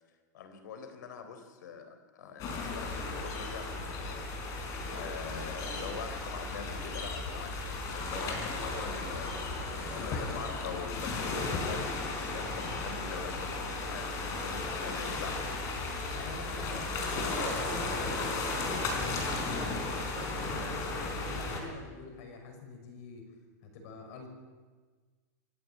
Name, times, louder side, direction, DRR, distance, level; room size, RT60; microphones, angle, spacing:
voice 1, 0.3-4.2 4.9-9.4 9.9-12.0 12.2-15.5 16.7-16.8, left 6 dB, 80° left, 8 dB, 3.8 m, -43 dB
sound 1, 2.4-21.6, left 3 dB, 35° left, 4.4 m, -35 dB
voice 2, 14.6-15.3 16.1-18.2 18.6-23.2 23.6-24.3, left 3 dB, 60° left, 4 dB, 5.9 m, -46 dB
26.0 x 11.5 x 9.4 m, 1.4 s
supercardioid pair, 155°, 10 cm